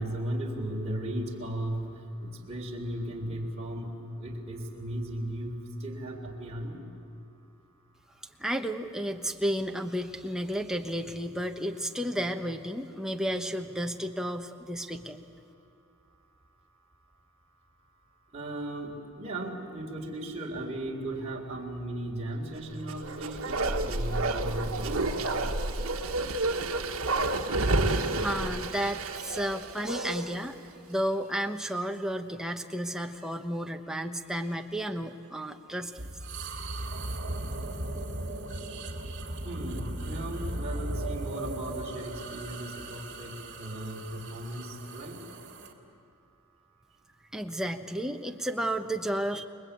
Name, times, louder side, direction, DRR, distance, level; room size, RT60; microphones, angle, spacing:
voice 1, 0.0-3.9 4.2-6.8 18.3-25.1 39.4-45.2, right 1 dB, 30° right, -2 dB, 3.5 m, -36 dB
voice 2, 8.4-15.2 27.7-30.6 30.9-36.1 47.3-49.4, equal, 5° right, 4 dB, 1.1 m, -32 dB
Bark, 22.8-30.4 30.7-30.8, right 2 dB, 70° right, 1.5 m, -30 dB
sound 1, 35.9-45.7, right 1 dB, 55° right, 2.5 m, -37 dB
29.5 x 22.0 x 8.7 m, 2.7 s
head